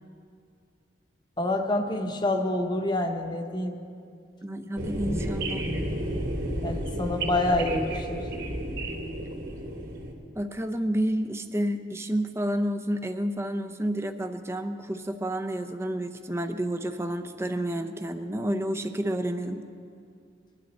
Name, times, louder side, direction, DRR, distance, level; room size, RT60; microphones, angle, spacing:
voice 1, 1.4-3.8 6.6-8.3, left 2 dB, 25° left, 4 dB, 1.0 m, -27 dB
voice 2, 4.4-5.6 10.4-19.7, right 1 dB, 15° right, 8 dB, 0.6 m, -30 dB
sound 1, 4.8-10.1, right 1 dB, 80° right, 2.6 m, -32 dB
23.0 x 11.5 x 4.3 m, 2.4 s
head